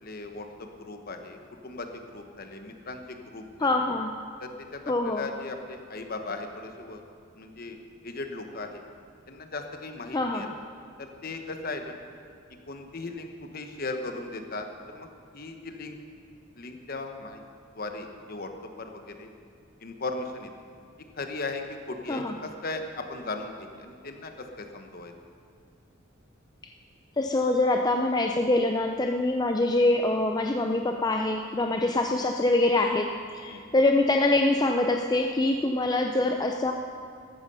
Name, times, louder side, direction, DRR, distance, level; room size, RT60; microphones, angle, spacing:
voice 1, 0.0-1.4 1.6-3.7 4.4-7.0 7.4-7.8 8.0-8.8 9.3-10.5 11.0-12.0 12.7-15.1 15.3-16.0 16.6-17.4 17.8-19.3 19.8-20.5 21.2-25.1 31.7-32.0 33.5-33.7, left 3 dB, 45° left, 5 dB, 1.2 m, -37 dB
voice 2, 3.6-4.1 4.9-5.3 10.1-10.5 22.1-22.4 27.2-36.7, left 2 dB, 20° left, 3 dB, 0.5 m, -24 dB
14.0 x 13.0 x 5.5 m, 2.3 s
head